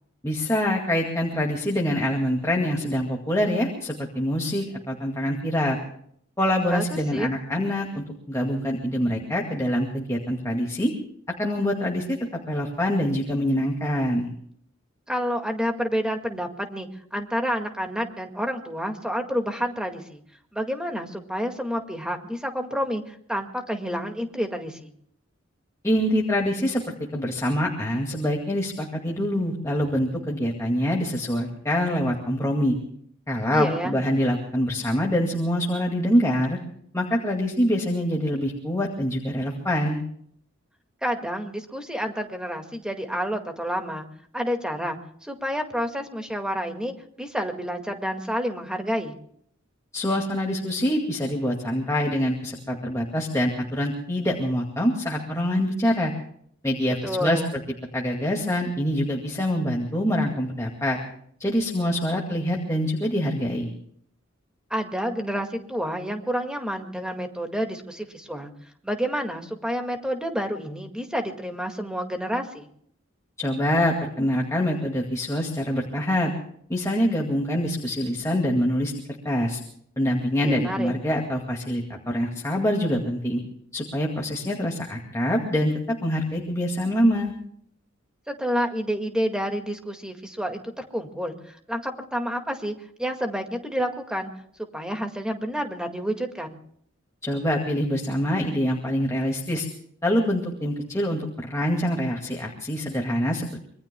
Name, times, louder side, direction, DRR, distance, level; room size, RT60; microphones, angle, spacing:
voice 1, 0.2-5.8 6.4-10.9 11.4-14.3 25.8-26.8 27.1-32.7 33.3-36.6 36.9-40.0 49.9-56.1 56.6-57.4 57.9-61.0 61.4-63.7 73.4-76.3 76.7-78.9 79.2-79.6 80.0-83.4 83.7-87.3 97.2-99.7 100.0-103.6, equal, 15° left, -1 dB, 2.2 m, -25 dB
voice 2, 6.7-7.4 15.1-20.2 20.5-24.9 33.5-34.0 41.0-44.1 44.3-49.2 57.0-57.6 64.7-68.5 68.8-72.7 80.4-80.9 88.3-92.7 93.0-94.3 94.7-96.6, equal, 5° right, 4 dB, 2.0 m, -29 dB
26.0 x 23.0 x 2.3 m, 0.66 s
head